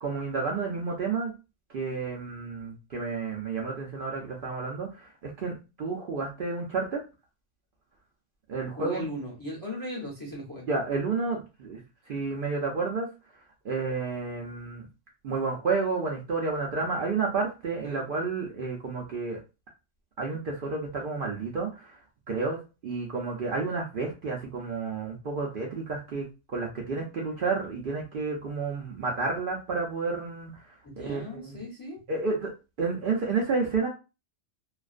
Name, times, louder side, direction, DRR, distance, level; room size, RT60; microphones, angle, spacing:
voice 1, 0.0-1.3 1.7-7.0 8.5-9.0 10.7-13.1 13.6-14.9 15.2-19.4 20.2-22.0 22.3-30.7 31.0-31.6 32.1-32.5 32.8-33.9, right 4 dB, 60° right, 0 dB, 0.6 m, -31 dB
voice 2, 8.8-10.7 17.8-18.0 30.8-32.0, equal, 25° left, -2 dB, 0.6 m, -37 dB
2.4 x 2.2 x 2.4 m, 0.29 s
omnidirectional pair, 1.3 m